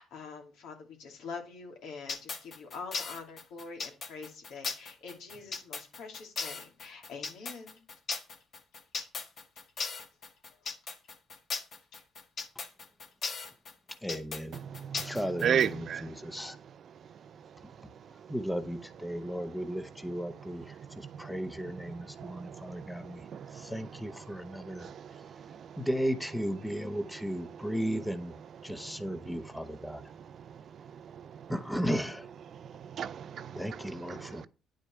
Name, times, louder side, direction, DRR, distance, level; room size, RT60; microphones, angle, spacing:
voice 1, 0.0-7.8 10.5-10.6 11.9-12.0, left 4 dB, 75° left, 2.8 m, -45 dB
sound 1, 2.1-15.7, left 4 dB, 45° left, 1.5 m, -37 dB
voice 2, 14.0-14.6 15.0-16.6 18.1-24.9 25.8-30.0 31.5-32.3 33.6-34.5, equal, 5° left, 0.9 m, -35 dB
voice 3, 14.8-15.1 15.4-16.1 22.2-22.9 23.3-23.7 24.8-25.3 32.8-33.6 34.2-34.5, right 8 dB, 50° right, 0.6 m, -33 dB
9.9 x 5.3 x 4.5 m
cardioid pair, 110°, 0 cm